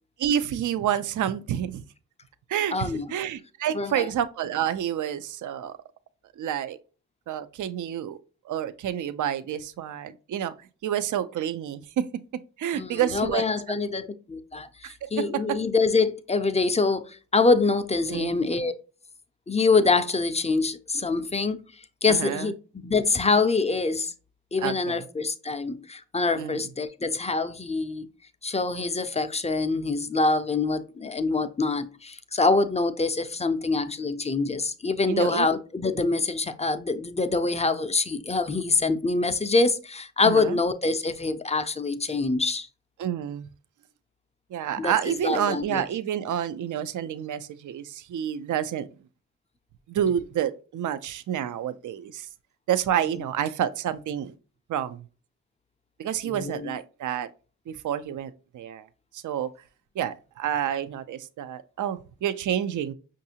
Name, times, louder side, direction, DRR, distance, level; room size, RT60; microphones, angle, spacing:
voice 1, 0.2-1.8 2.5-5.8 6.4-6.8 7.3-8.2 8.5-10.5 10.8-12.0 12.6-13.4 14.8-15.6 18.1-18.4 22.1-22.5 24.6-25.0 26.4-26.6 35.1-35.5 40.2-40.6 43.0-43.5 44.5-48.9 49.9-52.3 52.7-54.3 54.7-55.0 56.0-57.3 57.7-58.9 59.1-59.5 60.0-62.9, right 10 dB, 55° right, 0.5 m, -29 dB
voice 2, 2.7-3.1 3.7-4.1 12.7-18.7 19.5-21.6 22.0-24.1 24.5-28.1 28.4-42.7 44.8-45.8 56.2-56.8, left 3 dB, 20° left, 0.5 m, -25 dB
5.4 x 2.6 x 2.7 m
supercardioid pair, 50°, 36 cm